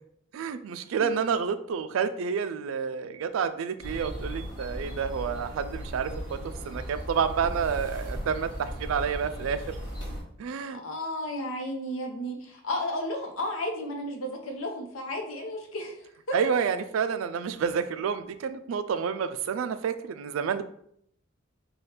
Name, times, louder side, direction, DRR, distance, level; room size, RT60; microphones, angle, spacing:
voice 1, 0.3-6.4 6.6-9.6 10.4-10.8 16.3-20.6, right 6 dB, 75° right, 11 dB, 0.3 m, -29 dB
sound 1, 3.8-10.2, equal, 25° left, 1.3 m, -37 dB
voice 2, 10.7-16.0 16.3-16.4, left 1 dB, 80° left, 3 dB, 0.7 m, -33 dB
3.3 x 2.3 x 4.3 m, 0.69 s
head